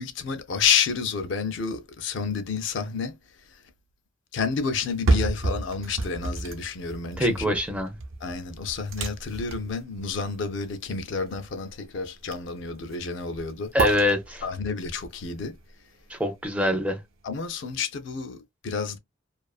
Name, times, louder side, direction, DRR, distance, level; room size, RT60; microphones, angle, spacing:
voice 1, 0.0-3.6 4.3-7.5 8.2-13.7 14.4-15.6 17.2-19.0, left 5 dB, 60° left, 0.4 m, -30 dB
sound 1, 4.8-16.8 17.2-17.3, right 2 dB, 75° right, 0.6 m, -32 dB
voice 2, 7.2-7.9 13.7-14.4 16.1-17.0, left 1 dB, 5° right, 0.4 m, -24 dB
2.4 x 2.4 x 2.3 m
head